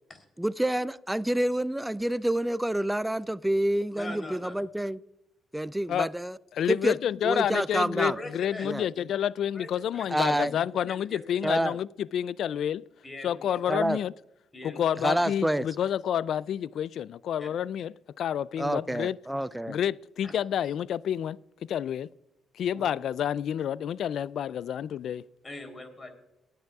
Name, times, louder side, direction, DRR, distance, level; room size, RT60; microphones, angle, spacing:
voice 1, 0.4-5.0 5.5-6.4 6.7-7.0 7.2-8.2 8.6-8.9 10.1-10.6 11.4-11.8 13.7-14.0 15.0-15.7 18.6-19.8, right 1 dB, 5° right, 0.4 m, -28 dB
voice 2, 3.9-4.5 8.0-8.7 9.5-9.7 10.2-11.5 13.0-13.4 14.5-14.8 17.4-17.5 20.2-20.4 22.7-22.8 25.4-26.1, left 1 dB, 25° left, 3.5 m, -41 dB
voice 3, 6.6-12.8 13.2-14.1 14.6-19.2 19.7-21.4 21.7-22.1 22.6-25.2, left 9 dB, 70° left, 0.3 m, -29 dB
26.5 x 9.1 x 2.4 m
cardioid pair, 90°, 0 cm